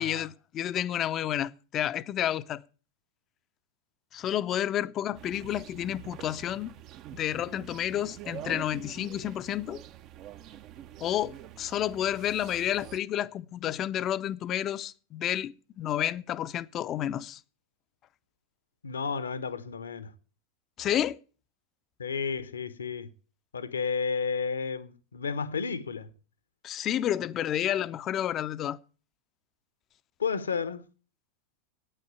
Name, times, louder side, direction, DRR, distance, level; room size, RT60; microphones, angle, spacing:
voice 1, 0.0-2.6 4.1-6.7 7.1-9.8 11.0-17.4 20.8-21.2 26.6-28.8, left 11 dB, 30° left, 0.6 m, -30 dB
sound 1, 5.1-13.0, right 12 dB, 40° right, 0.7 m, -46 dB
voice 2, 18.8-20.1 22.0-23.1 23.5-26.1 30.2-30.8, left 5 dB, 75° left, 1.0 m, -32 dB
9.3 x 8.9 x 8.8 m
figure-of-eight pair, 90°, 0 cm